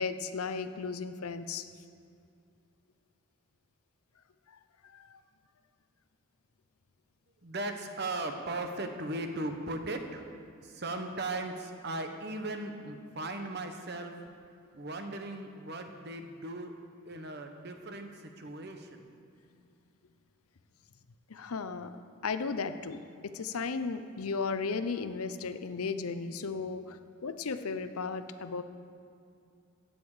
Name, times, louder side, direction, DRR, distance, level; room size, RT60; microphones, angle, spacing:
voice 1, 0.0-1.7 4.9-5.2 21.3-21.9 22.2-23.0 23.2-28.6, left 4 dB, 85° left, 10 dB, 0.7 m, -35 dB
voice 2, 7.4-10.3 10.6-14.1 14.7-16.7 17.1-19.1, right 2 dB, 50° right, 5 dB, 1.0 m, -37 dB
16.0 x 9.0 x 4.9 m, 2.5 s
head